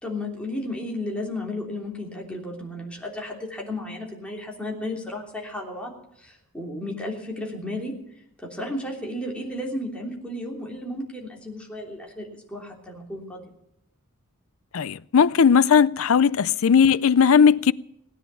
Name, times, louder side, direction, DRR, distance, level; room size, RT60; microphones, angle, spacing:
voice 1, 0.0-7.9 8.4-13.5, left 1 dB, 5° left, 3.2 m, -33 dB
voice 2, 14.7-17.7, left 6 dB, 65° left, 0.5 m, -17 dB
17.5 x 10.0 x 6.9 m
head